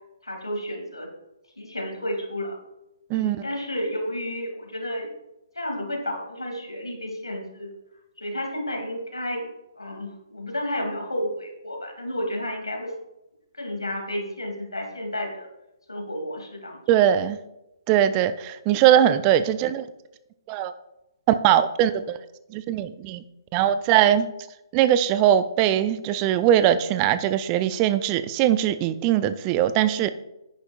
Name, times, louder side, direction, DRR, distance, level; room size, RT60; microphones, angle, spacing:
voice 1, 0.2-1.1 1.6-2.6 3.1-5.1 5.5-7.7 8.2-9.5 9.8-12.9 13.6-15.5 15.9-16.8, left 1 dB, 80° left, 2 dB, 2.7 m, -31 dB
voice 2, 3.1-3.4 16.9-17.4 17.9-19.9 20.5-20.7 21.3-22.2 22.5-23.2 23.5-24.3 24.7-30.1, right 11 dB, 25° right, 12 dB, 0.4 m, -21 dB
10.5 x 9.5 x 2.5 m, 0.92 s
figure-of-eight pair, 135°, 3 cm